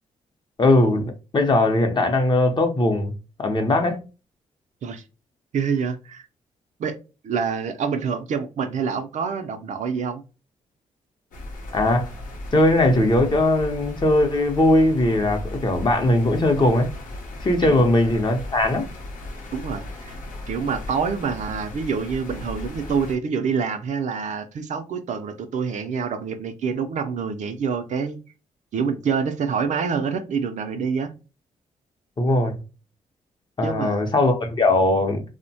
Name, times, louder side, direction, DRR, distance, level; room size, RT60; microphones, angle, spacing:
voice 1, 0.6-3.1 3.4-4.0 11.7-12.1 12.5-16.9 17.4-18.9 32.2-32.5 33.6-35.2, left 1 dB, 35° left, 0.6 m, -19 dB
voice 2, 5.5-6.2 6.8-7.0 7.2-10.2 17.6-17.8 19.5-20.2 20.5-28.2 28.7-31.1 33.6-34.0, right 6 dB, 65° right, 0.5 m, -26 dB
sound 1, 11.3-23.1, left 1 dB, 80° left, 0.7 m, -36 dB
2.7 x 2.1 x 2.6 m
cardioid pair, 75°, 14 cm